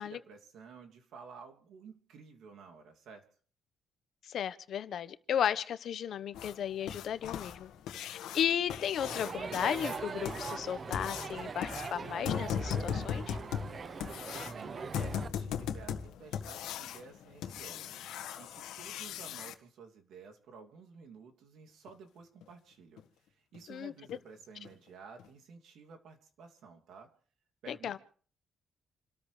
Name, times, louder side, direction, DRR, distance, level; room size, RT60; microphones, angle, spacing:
voice 1, 0.0-3.3 14.3-18.0 18.4-27.1 27.6-28.0, right 5 dB, 75° right, 3 dB, 2.7 m, -53 dB
voice 2, 4.3-7.7 8.0-13.4 23.7-23.9 27.7-28.0, left 9 dB, 65° left, 13 dB, 1.1 m, -34 dB
sound 1, 6.3-19.5 21.9-22.0 22.4-22.5 23.0-23.1 23.5-23.6 24.1-24.3 24.6-24.7 25.2-25.3, left 8 dB, 90° left, 1.7 m, -39 dB
Crowd, 9.0-15.3, right 5 dB, 40° right, 0.9 m, -41 dB
28.5 x 13.5 x 3.4 m, 0.43 s
cardioid pair, 90°, 0 cm